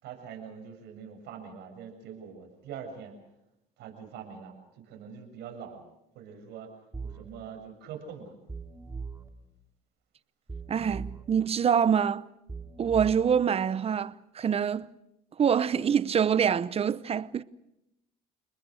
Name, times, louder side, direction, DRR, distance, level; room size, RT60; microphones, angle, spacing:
voice 1, 0.0-3.1 3.8-5.8 6.1-6.7 7.0-8.4, right 7 dB, 75° right, 7.1 m, -44 dB
sound 1, 6.9-7.3 8.5-9.3 10.5-11.3 12.5-13.3, right 4 dB, 15° right, 2.5 m, -39 dB
voice 2, 10.7-12.3 12.8-14.9 15.4-17.4, right 7 dB, 35° right, 0.8 m, -25 dB
29.0 x 20.5 x 6.5 m
cardioid pair, 105°, 18 cm